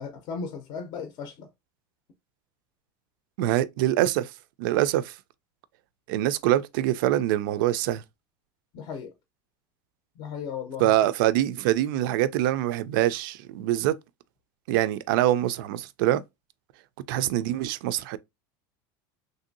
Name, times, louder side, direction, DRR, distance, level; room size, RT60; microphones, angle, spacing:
voice 1, 0.0-1.5 8.7-9.1 10.2-11.0, left 6 dB, 40° left, 0.5 m, -36 dB
voice 2, 3.4-4.3 4.6-5.1 6.1-8.0 10.8-13.9 14.7-16.2 17.1-18.2, right 13 dB, 70° right, 0.4 m, -24 dB
3.2 x 2.6 x 2.6 m
supercardioid pair, 160°, 11 cm